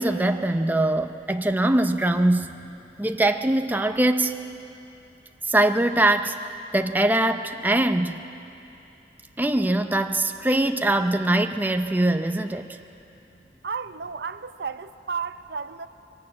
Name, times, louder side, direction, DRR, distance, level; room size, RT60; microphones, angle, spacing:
voice 1, 0.0-2.6 3.0-4.3 5.4-8.2 9.4-12.8, right 1 dB, 10° right, 7 dB, 0.6 m, -22 dB
voice 2, 13.6-15.9, right 5 dB, 65° right, 12 dB, 0.6 m, -33 dB
22.5 x 18.0 x 8.6 m, 2.9 s
head